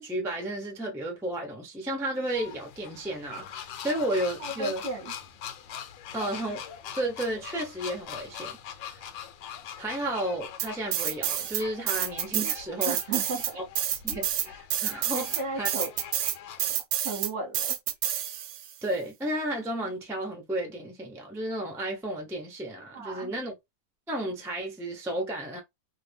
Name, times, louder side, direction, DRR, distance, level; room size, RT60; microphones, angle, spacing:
voice 1, 0.0-4.8 6.1-6.6 6.9-8.6 8.8-9.0 9.8-13.0 13.5-13.6 14.0-15.8 18.8-23.5 24.1-25.6, right 1 dB, 5° right, 0.4 m, -32 dB
sound 1, 2.3-16.7, left 8 dB, 90° left, 1.3 m, -43 dB
voice 2, 4.4-5.1 12.8-13.6 15.1-15.9 16.9-17.7 22.9-23.3, right 3 dB, 50° right, 1.0 m, -34 dB
sound 2, 10.6-11.6 11.9-18.7, right 11 dB, 75° right, 1.1 m, -29 dB
2.8 x 2.6 x 3.4 m
omnidirectional pair, 2.0 m